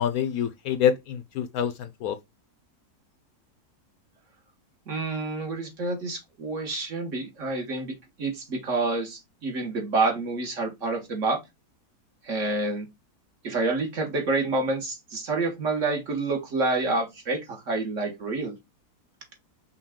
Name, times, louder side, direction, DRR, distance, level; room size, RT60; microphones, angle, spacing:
voice 1, 0.0-2.2, left 8 dB, 70° left, 0.9 m, -26 dB
voice 2, 4.9-11.4 12.2-12.9 13.4-18.5, right 3 dB, 50° right, 1.5 m, -28 dB
5.5 x 2.3 x 3.6 m
omnidirectional pair, 1.7 m